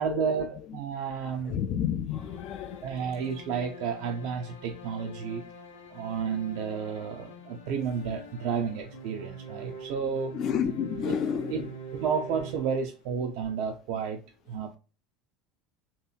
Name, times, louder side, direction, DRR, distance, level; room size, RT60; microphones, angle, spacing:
voice 1, 0.0-1.6 2.8-5.4 5.9-10.4 11.0-11.2 11.5-11.7 11.9-14.2 14.5-14.8, right 6 dB, 65° right, 0.4 m, -31 dB
voice 2, 1.5-2.9 10.3-11.7, left 8 dB, 50° left, 0.4 m, -30 dB
sound 1, 2.2-13.3, right 2 dB, 90° left, 0.6 m, -44 dB
2.8 x 2.7 x 2.3 m
hypercardioid pair, 75°, 0 cm